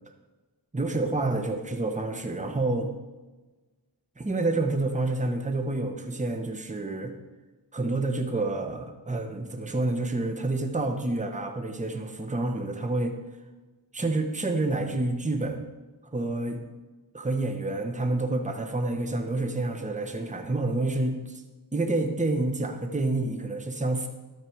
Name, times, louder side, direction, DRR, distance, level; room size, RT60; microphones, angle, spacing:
voice 1, 0.7-2.9 4.2-7.1 7.7-13.1 13.9-15.6 16.1-16.6 17.1-21.4 21.7-24.1, right 2 dB, 15° right, 5 dB, 1.1 m, -28 dB
12.5 x 5.0 x 4.7 m, 1.2 s
cardioid pair, 50°, 44 cm